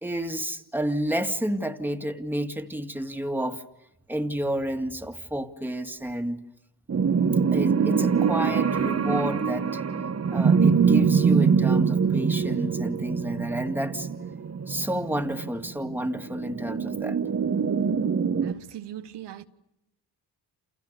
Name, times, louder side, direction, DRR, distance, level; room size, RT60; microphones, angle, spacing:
voice 1, 0.0-3.6 4.1-6.4 7.5-9.8 10.3-14.1 14.7-17.2, right 1 dB, 5° right, 2.1 m, -30 dB
sound 1, 6.9-18.5, right 6 dB, 35° right, 1.3 m, -24 dB
voice 2, 18.4-19.5, right 11 dB, 75° right, 1.5 m, -40 dB
29.5 x 29.5 x 6.8 m
cardioid pair, 95°, 42 cm